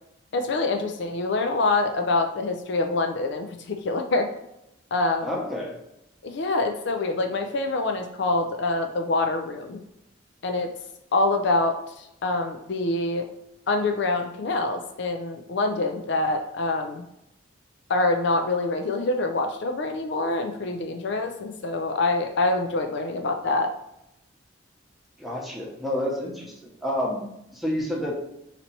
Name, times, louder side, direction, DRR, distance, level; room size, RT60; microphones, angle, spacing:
voice 1, 0.3-4.3 4.9-5.3 6.2-9.8 10.4-10.7 11.1-13.3 13.7-17.0 17.9-23.7, left 2 dB, 60° left, 5 dB, 0.4 m, -25 dB
voice 2, 5.2-5.8 25.2-26.5 26.8-28.1, left 1 dB, ahead, -3 dB, 0.9 m, -29 dB
4.0 x 2.9 x 4.4 m, 0.82 s
head